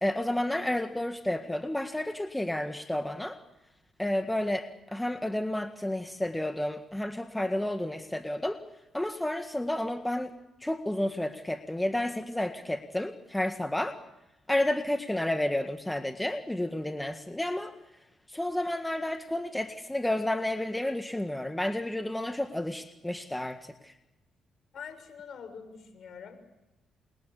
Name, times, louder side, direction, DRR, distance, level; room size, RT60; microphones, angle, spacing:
voice 1, 0.0-3.4 4.0-8.6 8.9-10.3 10.6-14.0 14.5-17.7 18.3-23.9, left 1 dB, 10° left, 7 dB, 1.8 m, -31 dB
voice 2, 24.7-26.4, left 6 dB, 60° left, 8 dB, 6.6 m, -44 dB
29.0 x 23.5 x 8.4 m, 0.96 s
cardioid pair, 90°, 0 cm